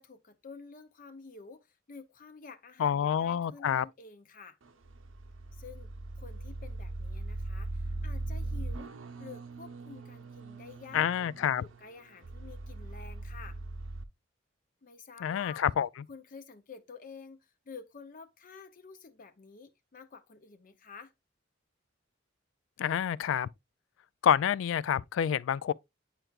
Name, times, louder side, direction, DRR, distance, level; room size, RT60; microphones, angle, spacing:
voice 1, 0.0-4.6 5.5-5.9 6.2-13.6 14.8-15.6 16.1-21.1, left 5 dB, 45° left, 0.6 m, -50 dB
voice 2, 2.8-3.9 10.9-11.6 15.2-15.9 22.8-23.5 24.2-25.7, left 9 dB, 75° left, 0.3 m, -28 dB
sound 1, 4.6-14.0, right 2 dB, 85° right, 0.7 m, -40 dB
9.0 x 4.5 x 2.3 m
head